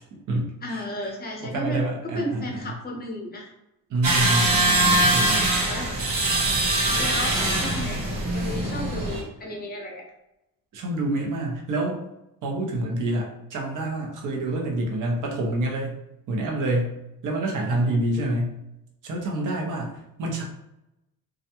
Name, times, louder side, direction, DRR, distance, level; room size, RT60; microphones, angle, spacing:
voice 1, 0.6-3.5 5.5-5.9 6.9-10.0, left 1 dB, 25° left, 0 dB, 0.6 m, -33 dB
voice 2, 1.4-2.7 3.9-5.6 10.7-12.0 12.4-16.0 16.3-17.0 17.2-18.6 19.0-20.4, right 1 dB, 55° right, 0 dB, 0.7 m, -27 dB
sound 1, 4.0-9.2, right 2 dB, 80° right, 1.0 m, -22 dB
2.4 x 2.1 x 2.8 m, 0.89 s
cardioid pair, 115°, 37 cm